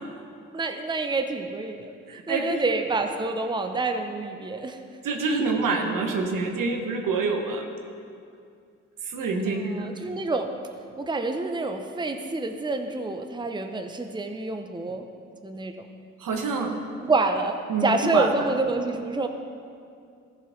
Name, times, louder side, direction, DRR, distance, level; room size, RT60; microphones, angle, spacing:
voice 1, 0.5-1.9 2.3-4.8 9.5-10.5 11.0-15.1 15.4-15.7 17.0-17.6 17.8-19.3, right 3 dB, 15° right, 6 dB, 0.8 m, -27 dB
voice 2, 2.1-2.6 5.0-7.6 9.0-9.9 16.2-16.7 17.7-18.3, right 4 dB, 70° right, 3 dB, 1.3 m, -26 dB
14.0 x 5.0 x 5.8 m, 2.4 s
supercardioid pair, 45°, 34 cm